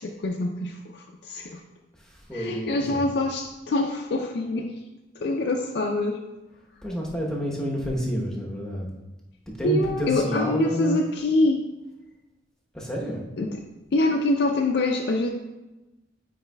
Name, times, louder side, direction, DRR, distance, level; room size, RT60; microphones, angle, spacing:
voice 1, 0.0-1.6 2.3-4.7 5.2-6.2 9.6-11.6 13.4-13.6 13.9-15.3, left 2 dB, 65° left, 1 dB, 0.4 m, -25 dB
voice 2, 2.0-3.0 6.8-8.9 9.6-11.0 12.7-13.2, equal, 5° left, -3 dB, 0.9 m, -29 dB
8.7 x 4.8 x 2.2 m, 1.0 s
head